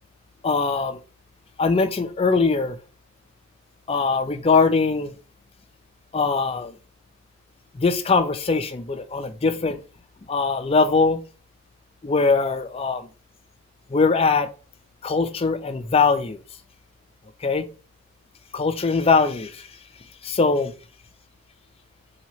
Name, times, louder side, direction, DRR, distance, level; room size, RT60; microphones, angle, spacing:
voice 1, 0.4-1.0 1.6-2.8 3.9-5.1 6.1-6.8 7.7-9.8 10.3-11.2 12.0-13.1 13.9-14.5 15.0-16.4 17.4-17.7 18.5-19.7 20.2-20.7, left 4 dB, 30° left, 9 dB, 0.4 m, -21 dB
2.8 x 2.8 x 4.3 m, 0.34 s
head